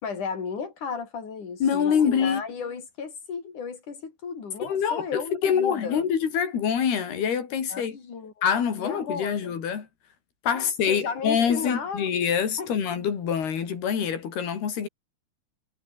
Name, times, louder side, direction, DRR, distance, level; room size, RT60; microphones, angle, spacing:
voice 1, 0.0-6.0 7.7-8.5 8.8-9.6 10.5-12.1 12.6-12.7, left 5 dB, 55° left, 6.1 m, -34 dB
voice 2, 1.6-2.4 4.7-8.0 8.4-9.9 10.4-14.9, left 7 dB, 85° left, 5.6 m, -25 dB
omnidirectional pair, 4.4 m